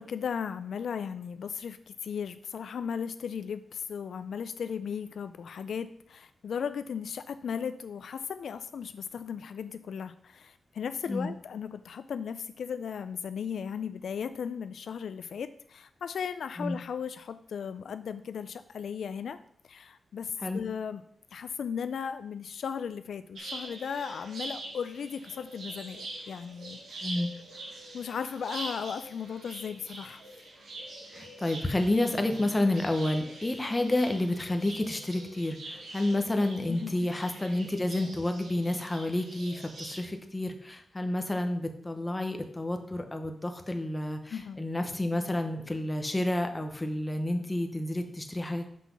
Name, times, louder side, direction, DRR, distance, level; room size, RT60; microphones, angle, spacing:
voice 1, 0.0-19.4 19.6-21.0 21.3-27.1 27.9-30.2 36.7-37.1 44.3-44.6, left 7 dB, 70° left, 11 dB, 0.3 m, -36 dB
sound 1, 23.4-40.0, right 2 dB, 70° right, 2.2 m, -44 dB
voice 2, 31.1-48.7, left 1 dB, 15° left, 5 dB, 0.8 m, -30 dB
5.9 x 5.7 x 6.0 m, 0.66 s
wide cardioid pair, 180°, 0 cm